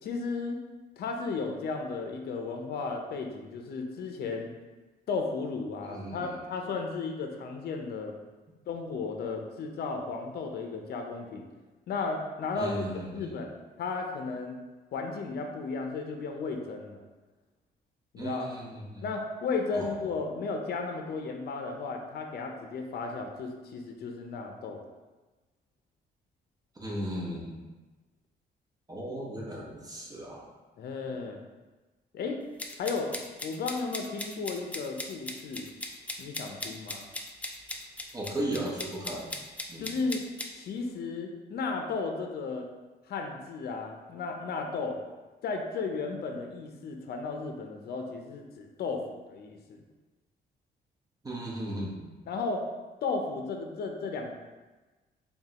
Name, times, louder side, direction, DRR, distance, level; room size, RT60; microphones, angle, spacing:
voice 1, 0.0-0.6 1.0-4.5 5.1-8.1 8.7-11.5 11.9-12.8 13.1-13.5 13.8-14.5 14.9-17.0 18.1-18.5 19.0-24.8 30.8-31.4 32.1-32.4 32.8-33.1 33.4-35.7 36.2-37.1 39.8-40.2 40.5-42.7 43.1-45.0 45.4-49.8 52.3-52.7 53.0-54.3, left 4 dB, 65° left, 3 dB, 0.6 m, -34 dB
voice 2, 5.8-6.4 12.6-13.4 18.1-19.0 19.7-20.2 26.7-27.6 28.9-30.5 31.0-31.2 38.1-39.3 39.7-39.9 51.2-52.1, right 1 dB, 20° right, -4 dB, 0.9 m, -36 dB
sound 1, 32.6-40.5, left 1 dB, 10° left, 0.3 m, -38 dB
5.2 x 2.3 x 2.9 m, 1.2 s
cardioid pair, 125°, 17 cm